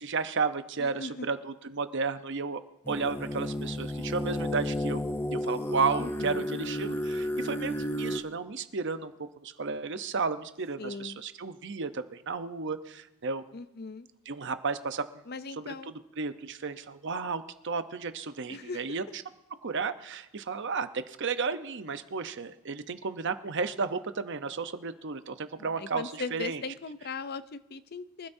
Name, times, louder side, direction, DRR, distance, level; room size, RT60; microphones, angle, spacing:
voice 1, 0.0-2.6 2.9-5.0 5.3-9.1 9.4-13.4 14.3-15.2 15.6-15.7 16.2-19.2 19.6-26.6, right 4 dB, 55° right, 10 dB, 0.8 m, -33 dB
voice 2, 0.8-1.3 6.0-6.5 10.8-11.2 13.5-14.1 15.3-15.9 18.5-18.8 25.6-28.3, left 4 dB, 45° left, 13 dB, 0.6 m, -39 dB
sound 1, 2.8-8.2, left 1 dB, 10° left, 0.7 m, -32 dB
24.5 x 12.5 x 2.7 m, 0.96 s
head